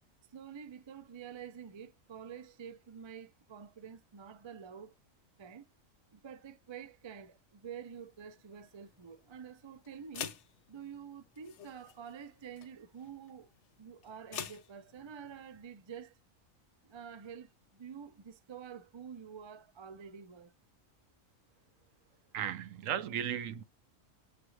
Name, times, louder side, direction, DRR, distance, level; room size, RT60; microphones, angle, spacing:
voice 1, 0.3-4.9 5.4-5.7 6.1-10.4 10.7-13.5 13.8-16.2 16.8-20.5, right 7 dB, 45° right, 0.3 m, -48 dB
sound 1, 7.8-15.6, left 8 dB, 65° left, 0.9 m, -49 dB
voice 2, 22.3-23.6, right 9 dB, 75° right, 1.0 m, -35 dB
6.6 x 2.5 x 3.0 m
omnidirectional pair, 1.4 m